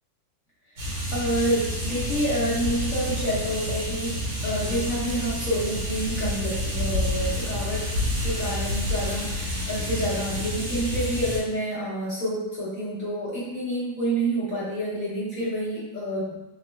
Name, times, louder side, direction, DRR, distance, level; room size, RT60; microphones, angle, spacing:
voice 1, 0.7-7.8 8.2-16.4, right 1 dB, 55° left, -9 dB, 0.9 m, -28 dB
sound 1, 0.8-11.4, left 1 dB, 70° right, 2.1 m, -29 dB
4.2 x 2.0 x 3.1 m, 0.98 s
omnidirectional pair, 2.4 m